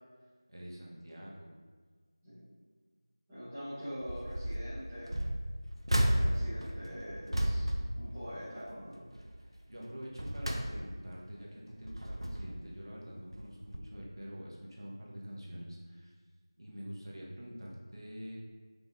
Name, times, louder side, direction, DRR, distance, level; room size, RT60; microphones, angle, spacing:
voice 1, 0.5-1.5 9.4-16.1 16.6-18.4, equal, 60° right, -4 dB, 1.2 m, -46 dB
voice 2, 3.3-5.2 6.0-9.1, equal, 5° right, -17 dB, 0.5 m, -44 dB
sound 1, 4.0-4.6 5.1-8.7 9.1-9.4 9.9-11.2 11.7-12.7 13.3-13.5 13.7-13.8, equal, 85° right, 0.6 m, -33 dB
5.4 x 2.7 x 3.6 m, 1.5 s
figure-of-eight pair, 175°, 3 cm